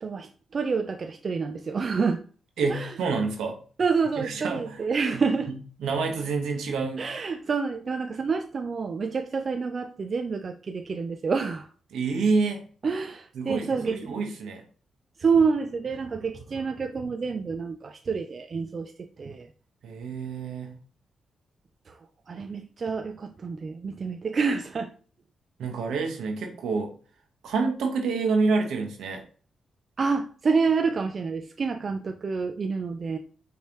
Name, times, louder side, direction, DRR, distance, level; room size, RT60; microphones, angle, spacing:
voice 1, 0.0-2.2 2.7-2.9 3.8-5.5 7.0-11.7 12.8-14.2 15.2-19.5 21.9-22.0 22.3-24.9 30.0-33.2, right 5 dB, 50° right, 6 dB, 0.4 m, -28 dB
voice 2, 2.6-3.6 4.2-4.8 5.1-7.1 11.9-12.6 13.3-14.6 19.8-20.8 25.6-26.9 27.4-29.2, right 4 dB, 85° right, 3 dB, 1.2 m, -28 dB
5.4 x 3.3 x 3.0 m, 0.40 s
cardioid pair, 60°, 0 cm